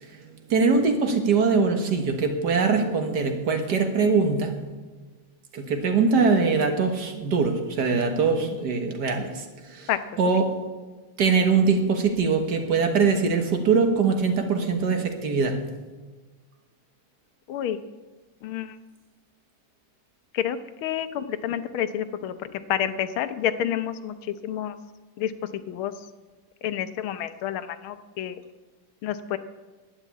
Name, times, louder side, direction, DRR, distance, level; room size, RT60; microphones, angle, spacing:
voice 1, 0.0-4.5 5.5-9.9 10.2-10.5 11.2-15.6, right 4 dB, 55° right, 6 dB, 1.8 m, -22 dB
voice 2, 17.5-17.8 18.4-18.8 20.3-22.3 22.7-24.7 25.2-25.3 25.7-25.9 26.6-28.4 29.0-29.4, left 10 dB, 85° left, 11 dB, 1.6 m, -29 dB
11.0 x 9.1 x 8.3 m, 1.3 s
omnidirectional pair, 2.2 m